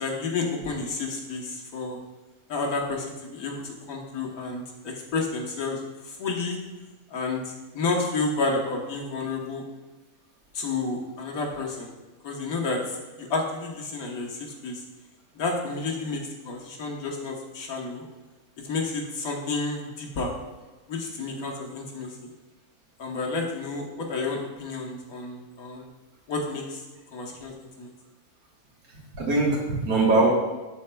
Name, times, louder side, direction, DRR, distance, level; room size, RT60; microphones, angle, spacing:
voice 1, 0.0-2.0 2.5-6.6 7.1-9.6 10.5-11.9 12.2-14.8 15.3-18.0 18.6-20.3 20.9-22.2 23.0-25.9 26.3-26.8 27.1-27.9, left 3 dB, 75° left, -1 dB, 1.5 m, -30 dB
voice 2, 28.9-30.3, right 2 dB, 75° right, -3 dB, 1.8 m, -22 dB
12.0 x 4.2 x 2.2 m, 1.2 s
omnidirectional pair, 1.6 m